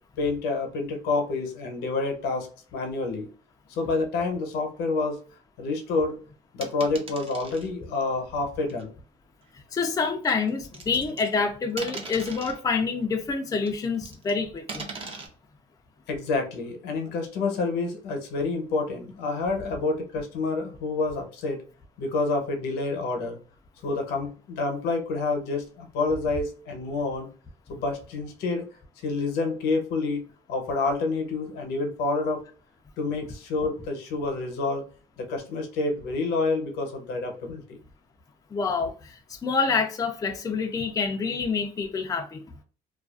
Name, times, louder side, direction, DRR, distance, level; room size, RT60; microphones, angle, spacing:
voice 1, 0.2-3.3 3.7-5.2 5.6-6.2 6.5-8.9 16.1-21.6 22.0-23.4 23.8-27.3 27.7-28.6 29.0-30.2 30.5-32.4 33.0-34.8 35.2-37.8, left 3 dB, 80° left, 0.8 m, -28 dB
sound 1, 6.6-7.7 8.7-8.8 10.3-11.4 11.8-12.6 13.7-14.3 14.7-15.3, right 3 dB, 35° right, 0.7 m, -39 dB
voice 2, 9.5-14.9 38.5-42.5, left 4 dB, 20° left, 0.4 m, -27 dB
2.4 x 2.3 x 2.3 m
cardioid pair, 110°, 17 cm